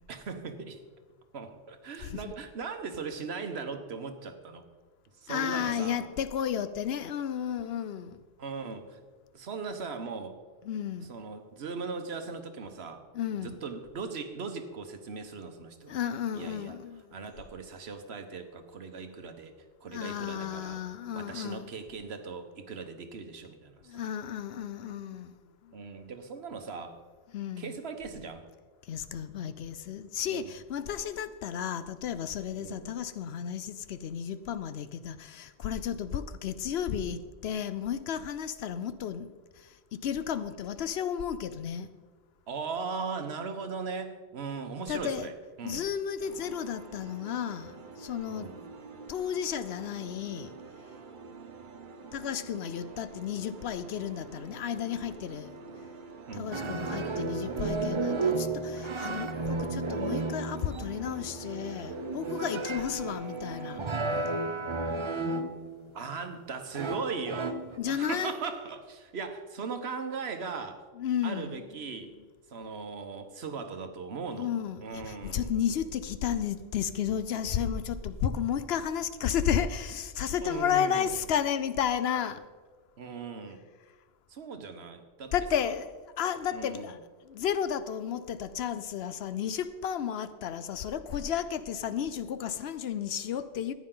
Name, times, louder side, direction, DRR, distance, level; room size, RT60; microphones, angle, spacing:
voice 1, 0.1-0.8 1.3-4.6 5.2-6.0 8.4-9.0 9.3-10.4 11.0-13.0 13.4-16.0 16.3-16.8 17.1-19.5 19.8-20.8 21.1-24.0 25.7-27.0 27.6-28.4 30.3-30.5 32.5-32.9 42.5-45.9 48.3-48.6 56.3-56.9 65.9-67.6 67.9-70.8 71.2-72.2 72.5-74.5 74.8-75.5 80.4-81.2 83.0-83.6 84.3-85.7 86.5-86.9, right 5 dB, 75° right, 1.3 m, -39 dB
voice 2, 5.3-8.2 10.6-11.1 13.1-13.6 15.9-17.1 19.9-21.7 23.9-25.7 27.3-27.7 28.9-39.3 39.6-39.8 40.0-41.9 44.9-45.3 45.6-48.5 49.1-50.5 52.1-55.6 56.4-63.9 67.8-68.3 71.0-71.7 74.4-82.4 85.3-87.0 87.3-93.7, left 8 dB, 75° left, 0.8 m, -33 dB
sound 1, 46.2-63.9, right 4 dB, 50° right, 0.9 m, -47 dB
sound 2, 56.5-65.9 66.7-67.8, right 3 dB, 35° right, 0.6 m, -33 dB
14.0 x 9.7 x 3.8 m
omnidirectional pair, 1.1 m